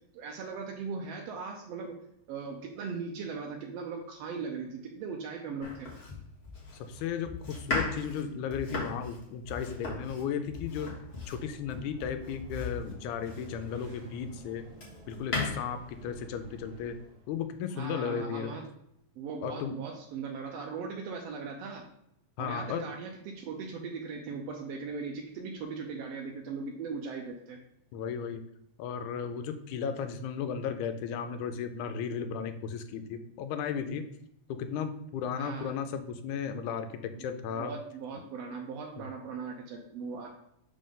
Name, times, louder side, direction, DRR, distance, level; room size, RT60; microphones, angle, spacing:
voice 1, 0.1-2.0 2.3-5.9 17.7-18.7 19.2-21.8 22.4-27.6 35.4-35.7 37.2-37.3 37.5-40.3, right 5 dB, 75° right, 1 dB, 1.6 m, -39 dB
Domestic sounds home sounds, 5.6-13.8 14.3-15.5, left 3 dB, 55° left, 0.7 m, -38 dB
voice 2, 6.8-10.9 11.3-14.7 15.1-17.0 17.3-18.5 19.4-19.8 22.4-22.9 27.9-28.5 28.8-34.1 34.5-37.7 39.0-39.1, left 7 dB, 85° left, 8 dB, 2.0 m, -35 dB
sound 1, 11.1-17.6, right 2 dB, 45° right, 1.4 m, -52 dB
5.3 x 5.0 x 3.7 m, 0.78 s
omnidirectional pair, 3.3 m